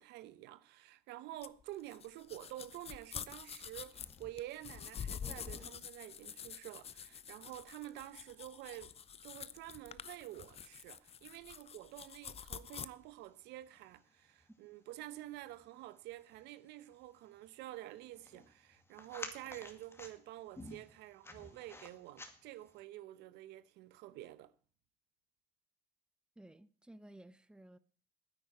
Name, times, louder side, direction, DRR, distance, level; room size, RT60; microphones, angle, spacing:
voice 1, 0.0-8.9 9.2-24.5, right 15 dB, 90° right, 0.9 m, -49 dB
sound 1, 1.4-12.9, left 8 dB, 35° left, 0.6 m, -47 dB
sound 2, 3.4-22.8, left 2 dB, 15° left, 2.1 m, -57 dB
voice 2, 26.4-27.8, right 1 dB, 5° right, 0.8 m, -56 dB
9.9 x 9.1 x 8.5 m
cardioid pair, 110°, 17 cm